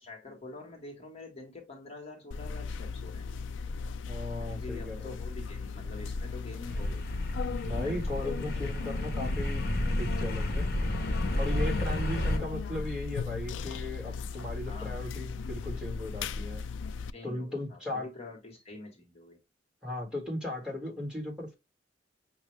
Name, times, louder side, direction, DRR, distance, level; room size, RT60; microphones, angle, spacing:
voice 1, 0.0-3.3 4.4-7.1 7.7-8.5 14.7-15.0 17.1-19.4, left 2 dB, 35° left, 1.4 m, -46 dB
sound 1, 2.3-17.1, left 5 dB, 85° left, 0.3 m, -37 dB
voice 2, 4.1-5.1 7.6-10.7 11.4-16.6 17.2-18.1 19.8-21.5, left 1 dB, 5° right, 1.8 m, -37 dB
sound 2, 6.7-12.4, left 1 dB, 60° left, 1.0 m, -31 dB
6.0 x 2.7 x 3.2 m
head